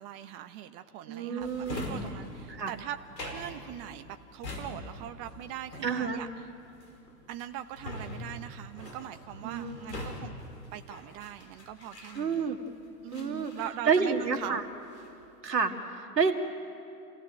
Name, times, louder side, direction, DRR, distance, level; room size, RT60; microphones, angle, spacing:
voice 1, 0.0-6.5 7.3-10.3 10.7-12.6 13.0-14.6, right 11 dB, 40° right, 8 dB, 1.1 m, -41 dB
voice 2, 1.1-2.0 2.5-2.7 5.8-6.2 9.4-9.8 12.2-12.6 13.1-13.5 13.9-14.6 15.4-16.3, right 5 dB, 85° right, 5 dB, 2.3 m, -29 dB
Drawer open or close, 1.4-12.7 13.1-14.4 14.7-15.3, left 1 dB, 80° left, 4.8 m, -43 dB
28.5 x 17.0 x 9.0 m, 2.7 s
hypercardioid pair, 110°, 48 cm